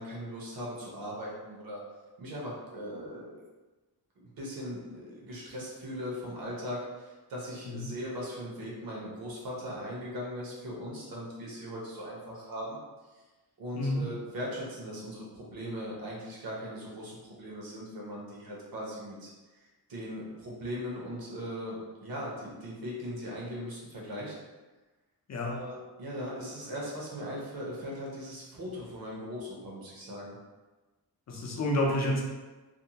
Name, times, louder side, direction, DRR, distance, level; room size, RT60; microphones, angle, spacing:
voice 1, 0.0-1.8 2.2-3.4 4.2-12.8 13.6-19.3 19.9-24.3 25.4-30.3, equal, 65° right, -4 dB, 0.9 m, -39 dB
voice 2, 31.3-32.2, left 1 dB, 45° left, -2 dB, 0.5 m, -29 dB
2.6 x 2.1 x 2.7 m, 1.2 s
wide cardioid pair, 175°, 38 cm